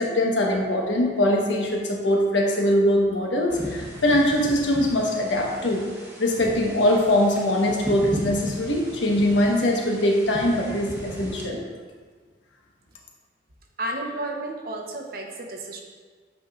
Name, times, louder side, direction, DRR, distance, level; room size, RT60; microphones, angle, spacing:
voice 1, 0.0-5.8 6.2-11.6, left 1 dB, 90° left, -1 dB, 1.1 m, -22 dB
sound 1, 3.5-11.5, equal, 10° right, 0.9 m, -37 dB
voice 2, 13.8-15.8, right 1 dB, 50° right, 1 dB, 0.8 m, -32 dB
8.3 x 5.9 x 2.4 m, 1.5 s
head